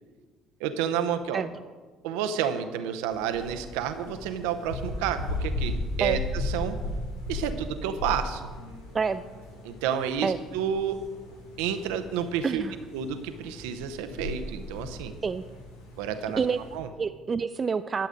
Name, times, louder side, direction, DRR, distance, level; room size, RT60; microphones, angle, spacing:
voice 1, 0.6-1.4 2.0-6.8 7.3-8.4 9.6-11.0 11.6-12.6 12.9-15.1 16.0-16.4 16.7-16.9, right 8 dB, 70° right, 9 dB, 0.7 m, -30 dB
sound 1, 3.1-16.8, left 2 dB, 80° left, 1.8 m, -36 dB
voice 2, 12.4-12.8 15.2-15.4 16.4-16.6 17.0-18.1, right 5 dB, 35° right, 11 dB, 0.3 m, -27 dB
11.5 x 7.7 x 5.1 m, 1.4 s
hypercardioid pair, 55°, 0 cm